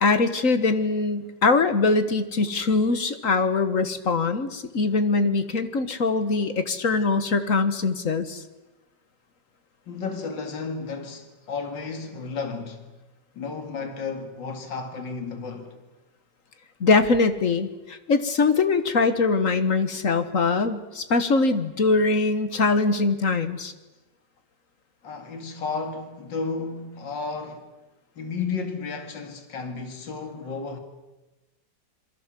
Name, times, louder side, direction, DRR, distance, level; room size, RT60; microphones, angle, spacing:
voice 1, 0.0-8.4 16.8-23.7, left 3 dB, 50° left, 1.6 m, -22 dB
voice 2, 9.9-12.8 13.3-15.7 25.0-27.7 28.2-30.8, left 4 dB, 75° left, 2.9 m, -33 dB
27.5 x 22.5 x 7.6 m
omnidirectional pair, 2.0 m